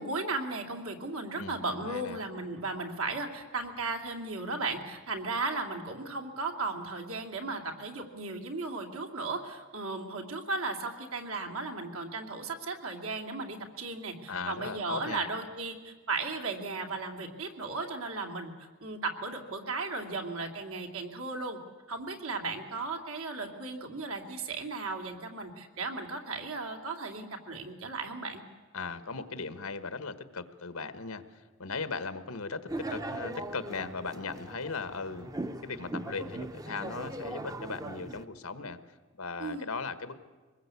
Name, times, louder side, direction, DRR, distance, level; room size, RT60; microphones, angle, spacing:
voice 1, 0.0-18.5 18.8-21.6 21.9-28.4 39.4-39.7, right 3 dB, 80° right, 3 dB, 2.8 m, -36 dB
voice 2, 1.4-2.2 14.3-15.2 28.7-31.2 31.6-35.3 35.6-38.8 39.2-40.2, left 4 dB, 85° left, 11 dB, 1.4 m, -38 dB
sound 1, 32.7-38.2, right 1 dB, 15° right, 0.7 m, -39 dB
24.0 x 20.5 x 8.4 m, 1.4 s
head